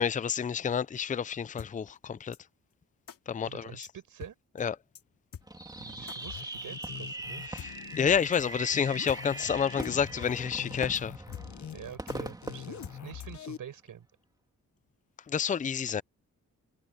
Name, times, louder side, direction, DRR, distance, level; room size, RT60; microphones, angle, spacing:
voice 1, 0.0-2.4 3.3-3.9 4.6-4.8 7.5-11.1 15.3-16.0, left 7 dB, 25° left, 0.5 m, -29 dB
sound 1, 1.6-1.7 2.3-2.4 3.1-3.2 3.8-3.9 4.2-4.3 4.6-4.7 4.9-5.0 5.3-5.5 6.1-6.2 6.8-6.9 7.6-7.7 8.3-8.4 8.7-8.8 9.1-9.2 9.5-9.6 9.8-9.9 10.2-10.3 10.6-10.7 10.9-11.0 11.3-11.7 12.1-12.2 12.8-13.4, left 8 dB, 80° left, 2.8 m, -45 dB
voice 2, 3.4-4.4 5.8-7.4 11.7-14.1, right 9 dB, 80° right, 5.1 m, -46 dB
Fireworks, 5.5-13.6, right 2 dB, 10° right, 2.9 m, -41 dB
sound 2, 6.2-13.6, left 10 dB, 60° left, 0.9 m, -44 dB
wide cardioid pair, 130°, 32 cm